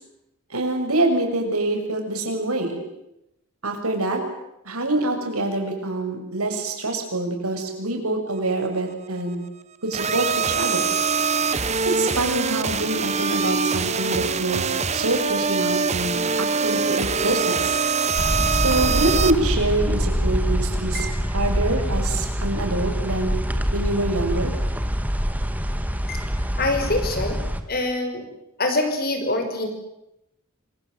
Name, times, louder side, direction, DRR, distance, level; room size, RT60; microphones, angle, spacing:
voice 1, 0.5-2.8 3.6-4.2 4.7-9.4 9.8-10.9 11.9-17.8 18.5-21.1 21.3-23.3 23.7-24.5, right 2 dB, 85° right, 4 dB, 6.9 m, -25 dB
sound 1, 9.9-19.3, right 5 dB, 30° right, 1.2 m, -23 dB
sound 2, 18.1-27.6, equal, 5° right, 1.8 m, -25 dB
voice 2, 26.6-27.4 27.7-28.2 28.6-29.7, left 2 dB, 45° left, 6 dB, 5.7 m, -24 dB
27.0 x 25.5 x 7.9 m, 0.85 s
head